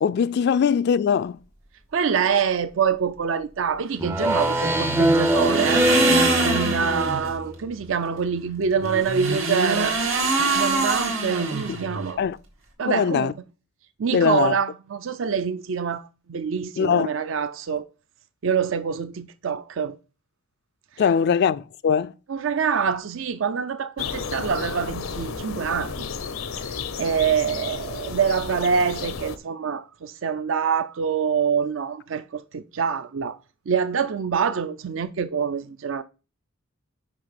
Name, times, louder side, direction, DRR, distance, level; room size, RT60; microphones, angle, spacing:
voice 1, 0.0-1.4 12.2-12.4 12.9-13.3 14.1-14.6 16.8-17.1 21.0-22.1, left 7 dB, 55° left, 0.3 m, -21 dB
voice 2, 1.9-5.9 6.4-10.0 10.5-12.2 12.8-13.4 14.0-17.9 18.4-20.0 22.3-25.9 26.6-26.7 27.0-33.3 33.7-36.0, right 6 dB, 65° right, 0.5 m, -25 dB
Speech synthesizer, 4.0-7.5, equal, 10° right, 0.4 m, -22 dB
sound 1, 4.2-7.3 8.8-12.1, right 3 dB, 85° right, 1.9 m, -25 dB
sound 2, 24.0-29.4, left 5 dB, 90° left, 0.7 m, -32 dB
6.0 x 5.3 x 5.8 m
head